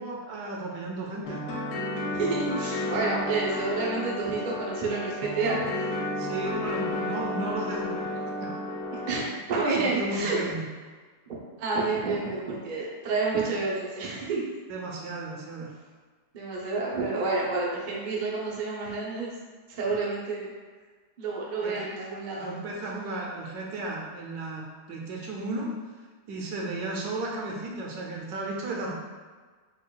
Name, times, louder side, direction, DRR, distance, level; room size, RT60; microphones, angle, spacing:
voice 1, 0.0-1.4 6.2-8.1 8.4-8.5 9.8-10.6 14.7-15.7 21.6-22.0 22.4-25.7 26.3-28.9, right 2 dB, 75° right, -1 dB, 1.1 m, -34 dB
sound 1, 1.2-9.2, left 1 dB, 85° left, 1.3 m, -32 dB
voice 2, 2.1-5.6 9.1-10.4 11.3-14.4 16.3-19.3 19.7-20.5 21.2-22.5, right 3 dB, 60° right, -4 dB, 0.5 m, -29 dB
4.9 x 2.3 x 2.2 m, 1.4 s
omnidirectional pair, 1.7 m